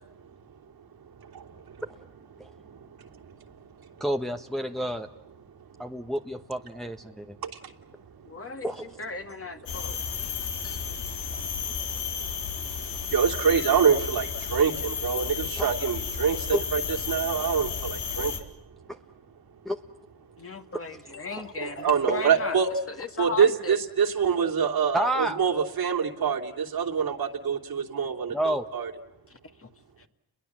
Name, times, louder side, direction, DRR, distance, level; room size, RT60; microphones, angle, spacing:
voice 1, 1.2-1.8 2.5-3.9 7.4-7.7 10.7-11.5 12.7-16.8 17.1-18.5 21.6-22.7 23.2-28.9, right 7 dB, 60° right, 3.1 m, -26 dB
voice 2, 4.0-5.1 5.8-7.4 8.6-8.9 15.6-15.7 16.5-16.6 18.9-19.0 19.6-19.8 24.9-25.4 28.3-28.6, right 1 dB, ahead, 1.4 m, -29 dB
voice 3, 8.3-8.7 9.0-10.0 10.4-10.8 20.4-23.8 29.3-29.7 30.0-30.1, left 4 dB, 35° left, 2.3 m, -37 dB
sound 1, 9.7-18.4, left 6 dB, 80° left, 3.9 m, -32 dB
30.0 x 22.0 x 7.6 m
supercardioid pair, 60°, 41 cm